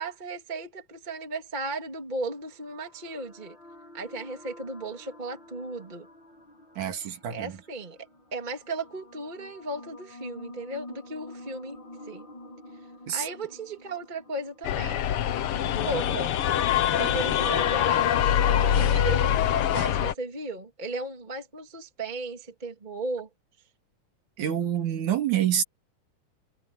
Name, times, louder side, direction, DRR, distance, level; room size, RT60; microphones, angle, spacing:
voice 1, 0.0-3.6 3.9-6.1 7.0-8.0 8.3-11.8 12.1-12.2 13.1-15.0 15.8-16.3 16.9-23.3, right 2 dB, 15° right, 2.3 m, -36 dB
sound 1, 1.9-16.0, left 1 dB, 35° left, 8.7 m, -49 dB
voice 2, 6.8-7.6 13.1-13.3 24.4-25.6, right 10 dB, 80° right, 3.4 m, -27 dB
sound 2, 14.6-20.1, left 10 dB, 65° left, 1.5 m, -24 dB
omnidirectional pair, 3.4 m